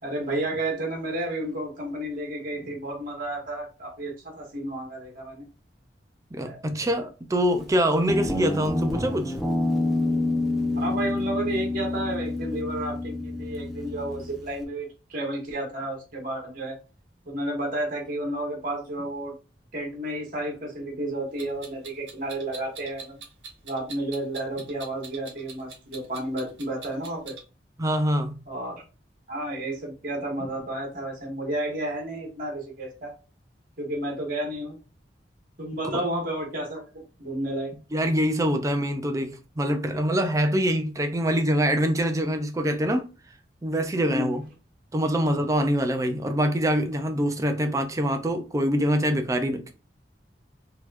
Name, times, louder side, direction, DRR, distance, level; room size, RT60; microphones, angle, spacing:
voice 1, 0.0-5.5 6.4-6.9 10.7-16.8 17.2-19.4 19.7-23.2 23.6-27.4 28.5-28.8 29.3-33.1 33.8-34.8 35.6-37.7 44.1-44.4, right 1 dB, 50° right, 1.4 m, -31 dB
voice 2, 6.3-9.3 27.8-28.3 37.9-43.1 43.6-44.4 44.9-49.7, equal, 20° right, 0.5 m, -24 dB
Guitar, 8.1-14.6, left 2 dB, ahead, 0.8 m, -28 dB
Clock, 21.4-27.4, right 5 dB, 70° right, 1.1 m, -43 dB
4.0 x 2.9 x 2.5 m
head